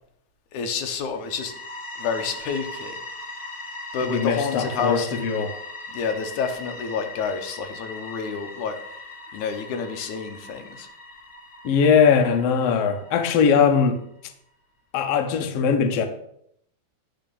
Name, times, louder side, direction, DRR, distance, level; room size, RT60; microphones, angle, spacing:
voice 1, 0.5-1.5 2.0-3.0 3.9-5.1 5.9-8.8 9.3-10.9, left 5 dB, 90° left, 2.5 m, -29 dB
sound 1, 1.2-13.9, left 2 dB, 45° left, 1.5 m, -39 dB
voice 2, 4.0-5.6 11.6-14.0 14.9-16.1, left 6 dB, 65° left, 1.8 m, -20 dB
9.6 x 4.2 x 7.0 m
omnidirectional pair, 3.3 m